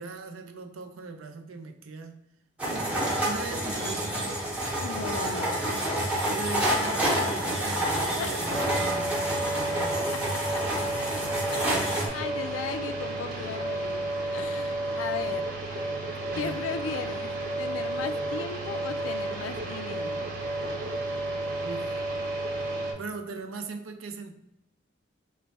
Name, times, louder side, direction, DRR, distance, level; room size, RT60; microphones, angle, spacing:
voice 1, 0.0-2.2 2.7-4.5 6.3-9.2 9.5-10.0 16.3-16.7 21.6-22.0 23.0-24.3, right 4 dB, 85° right, 0.5 m, -39 dB
sound 1, 2.6-12.1, right 1 dB, 5° right, 0.7 m, -28 dB
voice 2, 4.8-5.7 8.2-8.4 10.5-10.6 11.5-15.5 16.3-20.3, left 6 dB, 80° left, 0.3 m, -37 dB
sound 2, 8.5-22.9, right 2 dB, 45° right, 0.7 m, -32 dB
3.2 x 2.2 x 4.0 m
head